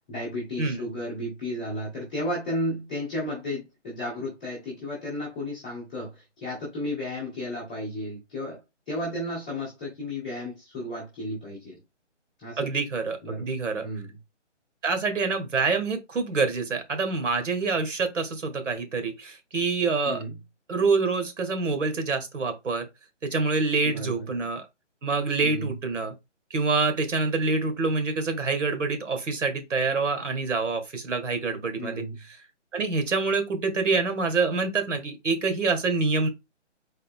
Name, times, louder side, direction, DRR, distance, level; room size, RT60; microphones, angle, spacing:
voice 1, 0.1-8.6 8.9-11.8 12.4-12.7 13.2-13.4 13.8-14.2 20.0-20.4 23.8-24.3 25.4-25.7 31.8-32.2, left 1 dB, 5° left, 0.9 m, -33 dB
voice 2, 12.6-13.9 14.8-20.2 20.7-22.9 23.2-24.6 25.0-26.1 26.5-32.0 32.7-36.3, right 4 dB, 75° right, 1.7 m, -26 dB
4.1 x 3.3 x 3.5 m
hypercardioid pair, 175°, 37 cm